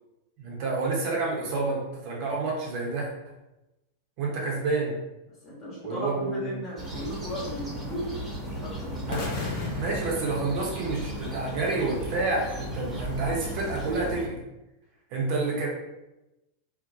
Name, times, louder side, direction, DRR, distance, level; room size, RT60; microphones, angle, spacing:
voice 1, 0.4-3.1 4.2-5.0 5.8-6.6 9.1-9.2 9.7-14.4 15.1-15.7, right 3 dB, 45° right, -2 dB, 0.6 m, -29 dB
voice 2, 5.4-8.2 8.6-9.2, equal, 30° left, -5 dB, 1.0 m, -36 dB
sound 1, 6.8-14.3, right 1 dB, 10° right, 0.9 m, -36 dB
sound 2, 9.1-11.2, left 3 dB, 45° left, 0.6 m, -35 dB
2.7 x 2.1 x 2.7 m, 0.97 s
figure-of-eight pair, 90°, 0 cm